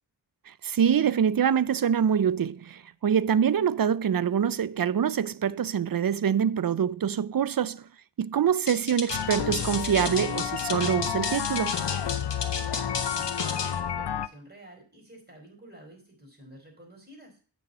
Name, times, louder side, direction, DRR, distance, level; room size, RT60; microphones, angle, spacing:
voice 1, 0.6-7.8 8.2-11.8, right 8 dB, 55° right, 0.5 m, -25 dB
sound 1, 8.7-13.8, left 5 dB, 90° left, 1.1 m, -33 dB
sound 2, 9.1-14.3, left 9 dB, 75° left, 0.6 m, -31 dB
voice 2, 12.5-17.5, right 1 dB, 25° right, 4.7 m, -50 dB
8.7 x 6.3 x 4.1 m
wide cardioid pair, 55°, 42 cm